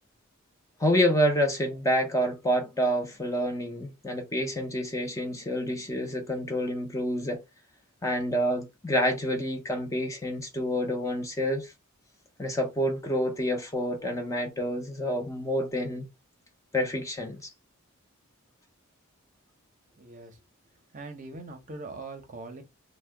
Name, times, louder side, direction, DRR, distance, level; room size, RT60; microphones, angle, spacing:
voice 1, 0.8-7.4 8.0-11.7 12.4-16.1 16.7-17.5, equal, 15° left, 0.5 m, -28 dB
voice 2, 20.0-20.4 20.9-22.6, right 3 dB, 35° right, 0.6 m, -41 dB
2.7 x 2.1 x 3.3 m
head